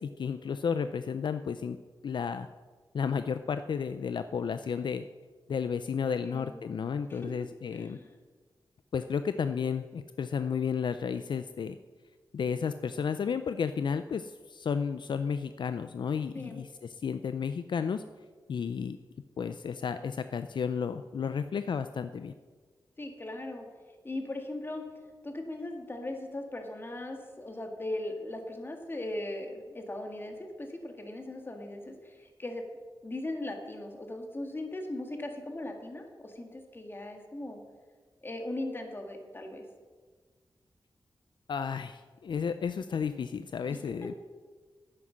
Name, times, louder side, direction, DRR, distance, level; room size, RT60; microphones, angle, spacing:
voice 1, 0.0-1.8 2.0-2.5 2.9-5.0 5.5-8.0 8.9-11.8 12.3-18.0 18.5-19.0 19.4-22.3 41.5-44.1, left 6 dB, 70° left, 11 dB, 0.4 m, -32 dB
voice 2, 6.2-6.6 7.1-8.1 16.3-16.6 23.0-23.6 24.0-24.8 25.2-32.6 33.0-37.6 38.2-39.6 43.7-43.8, left 1 dB, 25° left, 3 dB, 1.7 m, -39 dB
9.8 x 9.5 x 6.2 m, 1.4 s
wide cardioid pair, 120°, 8 cm